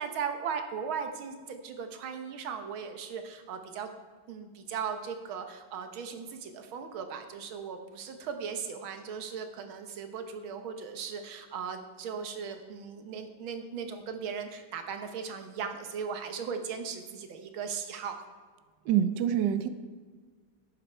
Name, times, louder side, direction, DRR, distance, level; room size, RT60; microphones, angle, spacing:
voice 1, 0.0-3.9 4.3-18.2, right 6 dB, 90° right, 7 dB, 1.8 m, -37 dB
voice 2, 18.9-19.7, right 10 dB, 70° right, 10 dB, 1.2 m, -26 dB
11.5 x 8.7 x 4.4 m, 1.5 s
omnidirectional pair, 2.2 m